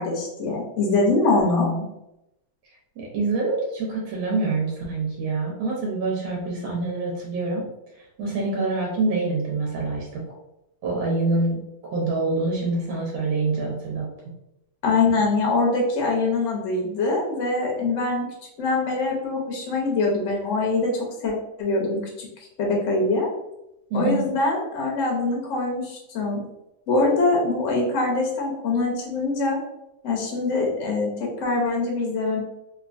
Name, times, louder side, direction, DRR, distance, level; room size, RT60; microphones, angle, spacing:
voice 1, 0.0-1.7 14.8-18.3 18.6-21.3 21.6-22.3 22.6-23.3 23.9-26.4 26.9-29.6 30.0-32.4, left 3 dB, 65° left, -1 dB, 0.8 m, -23 dB
voice 2, 1.4-1.9 3.0-7.6 8.2-10.2 10.8-11.6 11.9-14.1 23.9-24.2, right 3 dB, 90° right, -3 dB, 1.6 m, -26 dB
3.5 x 2.3 x 2.5 m, 0.87 s
omnidirectional pair, 2.1 m